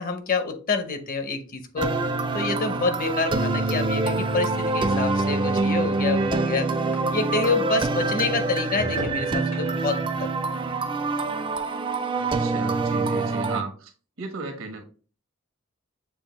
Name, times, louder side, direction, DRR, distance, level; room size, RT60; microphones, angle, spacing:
voice 1, 0.0-2.0 2.3-6.7 7.1-10.3, left 4 dB, 45° left, 7 dB, 0.7 m, -27 dB
sound 1, 0.8-7.6 7.9-12.5 12.8-13.3, left 1 dB, 75° left, 1.5 m, -43 dB
sound 2, 1.8-13.6, right 3 dB, 25° right, 0.4 m, -25 dB
voice 2, 12.1-13.9 14.2-14.8, right 2 dB, 80° right, 4 dB, 1.2 m, -34 dB
7.0 x 2.5 x 3.0 m, 0.39 s
head